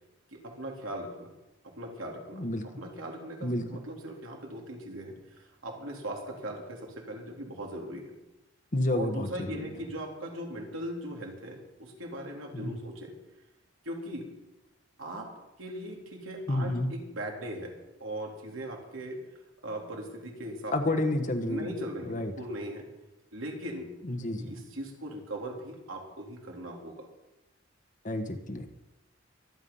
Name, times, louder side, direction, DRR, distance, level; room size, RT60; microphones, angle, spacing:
voice 1, 0.3-1.3 1.6-2.4 2.8-5.1 5.6-8.1 8.9-13.1 13.9-14.3 15.0-15.3 15.6-17.7 18.0-19.2 19.6-21.0 21.4-22.9 23.3-23.9 24.3-27.1, right 1 dB, 85° right, 0 dB, 3.6 m, -39 dB
voice 2, 2.3-2.7 3.4-3.8 8.7-9.7 12.5-12.8 16.5-16.9 20.7-21.7 22.1-22.3 24.0-24.5 28.0-28.7, left 1 dB, 40° left, 8 dB, 1.3 m, -30 dB
24.0 x 9.4 x 5.6 m, 1.0 s
head